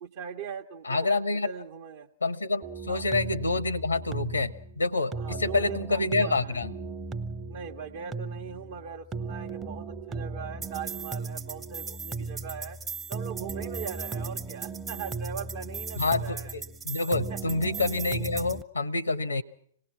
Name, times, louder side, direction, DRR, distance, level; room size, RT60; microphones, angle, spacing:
voice 1, 0.0-1.1 1.4-2.1 2.9-3.0 5.1-6.6 7.5-12.8 13.1-16.5 17.3-17.4, right 7 dB, 45° right, 0 dB, 0.9 m, -40 dB
voice 2, 0.8-1.5 2.2-6.7 16.0-19.4, left 3 dB, 80° left, 19 dB, 0.8 m, -27 dB
sound 1, 2.6-18.6, right 4 dB, 15° right, 0.8 m, -36 dB
26.5 x 18.5 x 5.9 m, 0.64 s
figure-of-eight pair, 110°, 0 cm